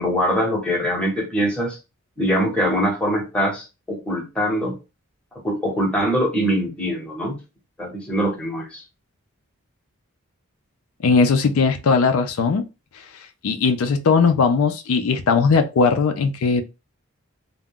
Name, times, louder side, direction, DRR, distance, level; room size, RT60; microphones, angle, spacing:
voice 1, 0.0-1.8 2.2-4.8 5.4-7.4 7.8-8.8, equal, 5° left, 0.8 m, -23 dB
voice 2, 11.0-12.6 13.4-16.6, left 5 dB, 75° left, 0.4 m, -18 dB
2.3 x 2.1 x 3.6 m
head